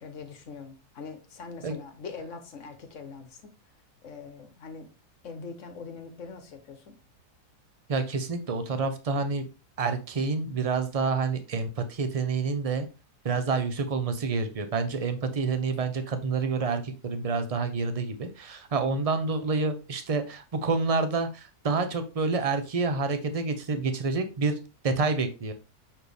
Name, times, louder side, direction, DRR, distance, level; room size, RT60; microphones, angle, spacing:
voice 1, 0.0-3.5 4.0-4.9 5.2-7.0, left 5 dB, 50° left, 1.3 m, -42 dB
voice 2, 7.9-9.4 9.8-12.9 13.2-24.6 24.8-25.5, right 4 dB, 45° right, 0.4 m, -28 dB
6.4 x 4.3 x 3.4 m
omnidirectional pair, 1.7 m